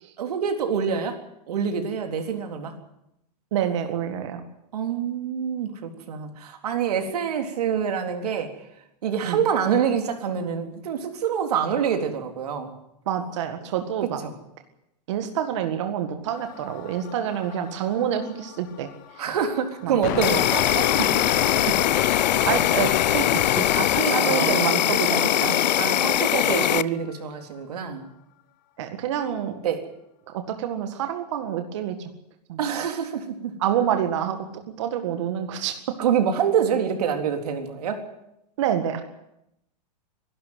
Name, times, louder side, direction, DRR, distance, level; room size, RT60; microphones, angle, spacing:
voice 1, 0.2-1.2 1.5-2.7 4.7-8.5 9.0-12.8 14.2-14.3 19.2-20.9 21.5-21.8 23.8-24.6 25.8-28.1 29.6-29.8 32.6-33.5 36.0-38.0, right 7 dB, 65° right, 4 dB, 3.8 m, -26 dB
voice 2, 3.5-4.4 9.2-9.4 13.1-14.2 15.1-18.9 19.8-20.4 21.0-21.1 22.5-23.7 24.1-25.6 25.9-26.1 28.8-29.6 30.3-32.1 32.5-32.6 33.6-34.4 34.8-35.8 38.6-39.0, right 9 dB, 45° right, 6 dB, 1.9 m, -27 dB
sound 1, 16.3-24.0 27.1-27.2, left 15 dB, 30° left, 0.7 m, -30 dB
Insect, 20.2-26.8, left 11 dB, 90° left, 0.7 m, -22 dB
23.0 x 12.5 x 9.5 m, 0.82 s
supercardioid pair, 175°, 21 cm